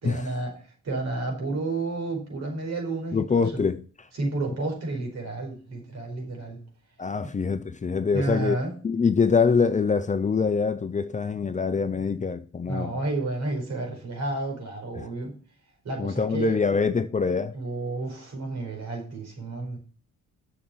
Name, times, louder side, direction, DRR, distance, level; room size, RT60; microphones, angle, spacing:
voice 1, 0.0-3.7 4.1-6.6 7.2-7.3 8.1-8.7 12.7-15.3 15.8-16.6 17.5-19.8, right 2 dB, 60° right, 4.8 m, -31 dB
voice 2, 3.1-3.8 7.0-8.6 8.8-12.9 16.0-17.6, left 5 dB, 25° left, 0.7 m, -24 dB
7.0 x 6.9 x 7.8 m
cardioid pair, 90°, 30 cm